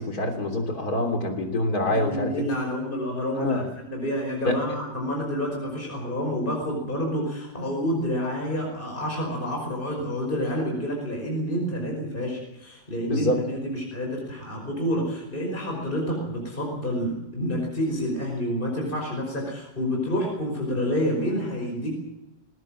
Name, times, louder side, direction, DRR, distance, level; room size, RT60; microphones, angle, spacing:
voice 1, 0.0-2.4 3.4-3.6 4.5-4.6 13.1-13.4, left 1 dB, 55° left, 5 dB, 3.8 m, -25 dB
voice 2, 1.8-21.9, equal, 25° left, 0 dB, 5.6 m, -28 dB
19.5 x 19.5 x 7.6 m, 0.91 s
omnidirectional pair, 2.0 m